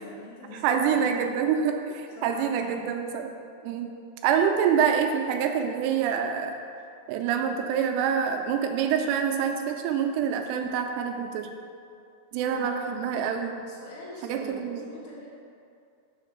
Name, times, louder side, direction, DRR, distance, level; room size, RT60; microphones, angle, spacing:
voice 1, 0.0-1.4 2.2-2.9 12.4-12.9 13.7-15.3, left 1 dB, 65° left, -7 dB, 1.5 m, -44 dB
voice 2, 0.6-3.3 3.6-3.9 4.2-6.6 7.1-11.5 12.3-13.5 14.2-14.8, right 7 dB, 85° right, 4 dB, 2.7 m, -26 dB
5.8 x 4.2 x 5.9 m, 2.4 s
omnidirectional pair, 4.8 m